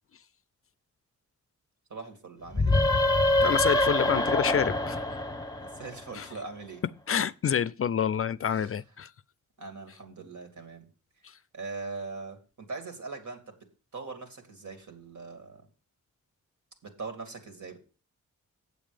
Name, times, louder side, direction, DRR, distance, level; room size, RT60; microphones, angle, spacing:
voice 1, 1.9-2.8 5.6-6.8 8.4-8.8 9.6-10.9 11.5-15.7 16.8-17.8, right 4 dB, 70° right, 2.6 m, -41 dB
sound 1, 2.5-6.1, left 1 dB, 10° left, 0.9 m, -25 dB
voice 2, 3.4-5.0 6.2-6.3 7.1-9.1, left 8 dB, 45° left, 0.4 m, -27 dB
8.2 x 7.4 x 5.0 m
cardioid pair, 70°, 32 cm